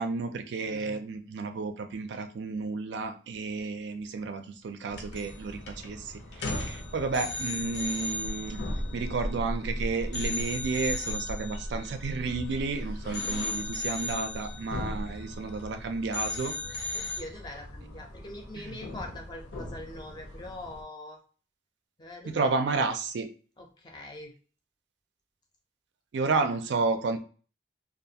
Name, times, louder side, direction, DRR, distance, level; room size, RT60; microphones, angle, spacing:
voice 1, 0.0-8.6 8.9-17.2 18.6-18.8 22.3-23.3 26.1-27.2, right 4 dB, 75° right, 8 dB, 0.4 m, -32 dB
voice 2, 0.6-1.0 16.9-21.2 22.0-22.5 23.6-24.3 26.3-26.5, left 1 dB, 25° left, 2 dB, 0.5 m, -43 dB
sound 1, 4.9-20.8, equal, 85° left, 0.9 m, -38 dB
sound 2, 5.0-5.4 5.7-5.9 6.3-9.7 10.1-12.7 13.1-15.8 16.1-17.2, left 3 dB, 70° left, 0.6 m, -37 dB
2.4 x 2.3 x 2.7 m, 0.39 s
head